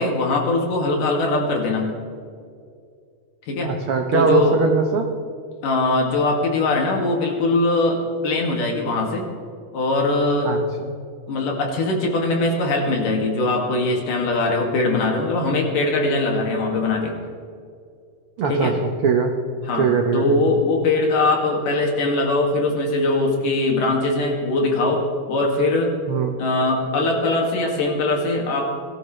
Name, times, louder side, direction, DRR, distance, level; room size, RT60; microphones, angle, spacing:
voice 1, 0.0-1.9 3.5-3.7 4.1-4.6 5.6-9.3 9.7-10.5 11.3-17.1 18.5-18.8 19.7-19.9 20.1-25.9 26.4-28.7, left 2 dB, 75° left, 0 dB, 3.7 m, -21 dB
voice 2, 3.6-5.1 10.4-10.9 18.4-19.3 19.8-20.5 26.1-26.3, right 5 dB, 75° right, 4 dB, 1.2 m, -21 dB
21.5 x 14.0 x 3.3 m, 2.3 s
omnidirectional pair, 3.9 m